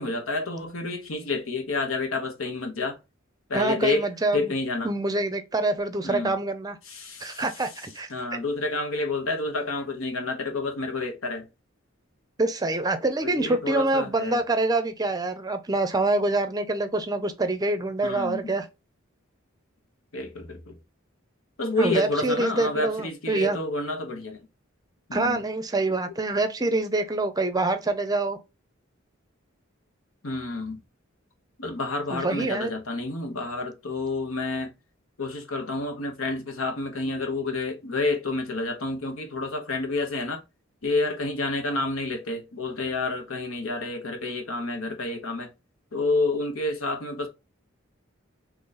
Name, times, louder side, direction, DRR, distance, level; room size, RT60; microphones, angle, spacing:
voice 1, 0.0-3.0 3.5-4.1 4.3-4.9 6.0-6.4 6.9-7.4 8.1-11.4 13.2-14.4 18.0-18.5 20.1-20.7 21.6-24.4 25.1-25.4 30.2-30.8 31.6-34.7 35.2-40.4 40.8-45.5 45.9-47.3, left 2 dB, 85° left, 1.1 m, -29 dB
voice 2, 3.5-4.5 4.8-6.8 7.2-8.1 12.4-18.7 21.8-23.6 25.1-28.4 32.1-32.7, right 2 dB, 20° right, 0.6 m, -26 dB
3.9 x 3.1 x 3.9 m
head